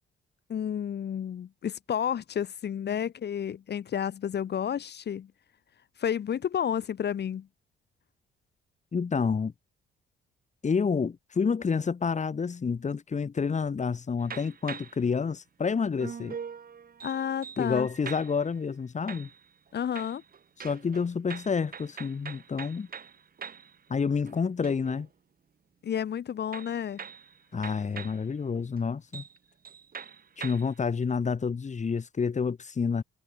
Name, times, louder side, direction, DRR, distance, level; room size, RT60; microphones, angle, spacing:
voice 1, 0.5-5.3 6.0-7.5 17.0-17.9 19.7-20.2 25.8-27.0, left 9 dB, 55° left, 3.3 m, -31 dB
voice 2, 8.9-9.5 10.6-16.4 17.6-19.3 20.6-22.9 23.9-25.1 27.5-29.2 30.4-33.0, left 5 dB, 35° left, 3.5 m, -29 dB
sound 1, 14.2-15.1 16.0-18.6 19.1-19.7 20.0-23.8 24.1-25.1 26.5-28.3 28.8-28.9 29.1-29.4 29.6-30.8, right 7 dB, 45° right, 5.9 m, -43 dB
cardioid pair, 90°, 20 cm